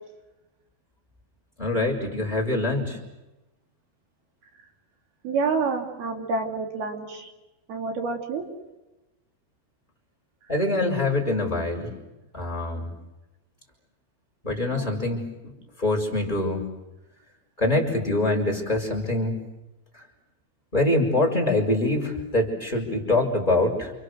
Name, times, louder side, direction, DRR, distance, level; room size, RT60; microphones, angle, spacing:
voice 1, 1.6-3.0 10.5-11.9 12.3-12.9 14.4-16.7 17.6-19.4 19.9-20.0 20.7-23.9, left 2 dB, 10° left, 3 dB, 4.5 m, -24 dB
voice 2, 5.2-7.3 7.7-8.4 14.7-15.0, right 4 dB, 80° right, 2 dB, 5.0 m, -28 dB
29.0 x 28.5 x 6.5 m, 1.0 s
omnidirectional pair, 4.4 m